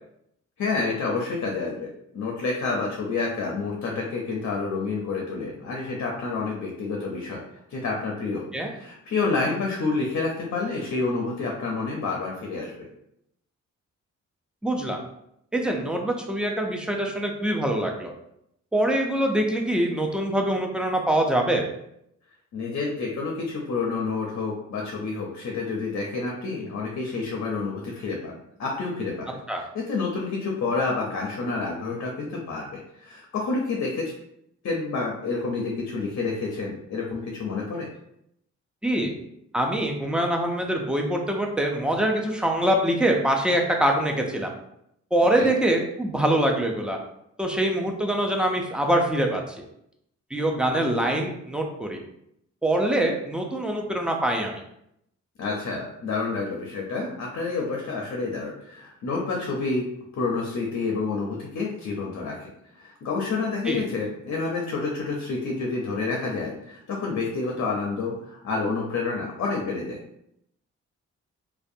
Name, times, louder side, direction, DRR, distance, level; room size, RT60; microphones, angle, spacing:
voice 1, 0.6-7.4 7.7-8.4 8.7-12.7 22.5-29.3 29.7-32.7 33.0-34.1 34.6-37.9 45.3-45.5 55.4-59.9 60.2-62.5 62.8-70.0, left 4 dB, 60° left, -1 dB, 0.5 m, -29 dB
voice 2, 14.6-15.0 15.5-18.1 18.7-21.7 29.5-29.6 38.8-39.1 39.5-44.5 45.1-47.0 47.4-49.6 50.3-52.0 52.6-54.6 63.7-63.8, right 1 dB, 5° right, 1 dB, 0.3 m, -24 dB
2.5 x 2.1 x 2.6 m, 0.77 s
cardioid pair, 90°, 29 cm